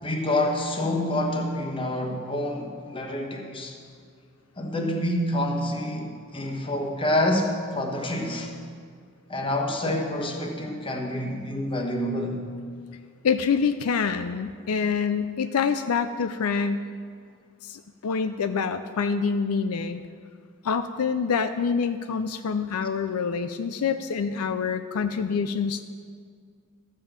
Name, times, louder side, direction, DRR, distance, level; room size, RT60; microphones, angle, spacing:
voice 1, 0.0-3.8 4.6-8.5 9.3-12.5, left 1 dB, 25° left, 2 dB, 1.1 m, -27 dB
voice 2, 13.2-16.8 17.6-20.0 20.6-25.8, left 5 dB, 75° left, 9 dB, 0.4 m, -26 dB
14.0 x 5.4 x 7.2 m, 2.1 s
head